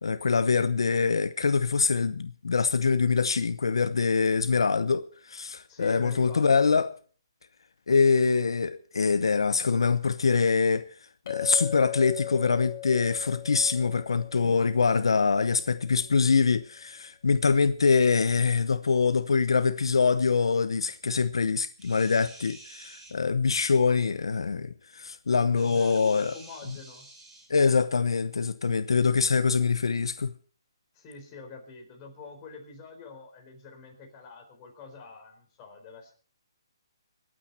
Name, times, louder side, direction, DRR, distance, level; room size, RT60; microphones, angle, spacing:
voice 1, 0.0-6.9 7.9-10.9 11.3-26.3 27.5-30.3, left 5 dB, 85° left, 0.9 m, -24 dB
voice 2, 5.7-6.5 25.5-27.1 30.9-36.1, left 4 dB, 20° left, 4.5 m, -45 dB
Chink clink, 11.3-15.7, left 17 dB, 40° left, 4.2 m, -39 dB
sound 1, 21.8-23.1 25.5-27.5 29.3-29.4, right 2 dB, 10° right, 3.4 m, -49 dB
26.0 x 9.1 x 4.3 m
hypercardioid pair, 160°, 3 cm